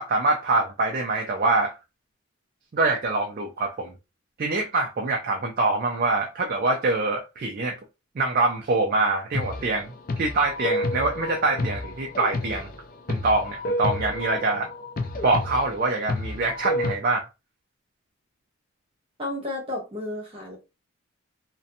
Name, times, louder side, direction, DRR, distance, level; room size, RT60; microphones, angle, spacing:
voice 1, 0.0-1.8 2.7-3.9 4.4-7.8 8.2-9.9 10.2-12.7 13.1-14.7 15.2-17.3, right 3 dB, 40° right, 0.3 m, -24 dB
sound 1, 9.3-17.0, left 1 dB, 40° left, 0.3 m, -30 dB
voice 2, 19.2-20.6, left 2 dB, 25° right, 0.9 m, -32 dB
2.7 x 2.1 x 2.5 m
head